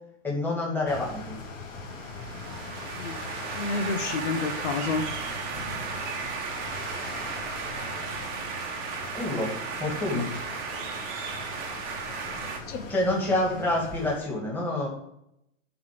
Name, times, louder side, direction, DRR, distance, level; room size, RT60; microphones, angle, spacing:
voice 1, 0.2-1.3 9.1-10.3 12.9-14.9, left 2 dB, 5° left, -4 dB, 2.2 m, -27 dB
sound 1, 0.9-14.2, left 3 dB, 20° left, 4.1 m, -41 dB
sound 2, 1.9-12.6, right 5 dB, 25° right, 1.1 m, -35 dB
voice 2, 3.5-5.1 12.7-12.8, left 4 dB, 65° left, 6 dB, 1.3 m, -29 dB
10.5 x 4.1 x 6.8 m, 0.78 s
hypercardioid pair, 160°, 39 cm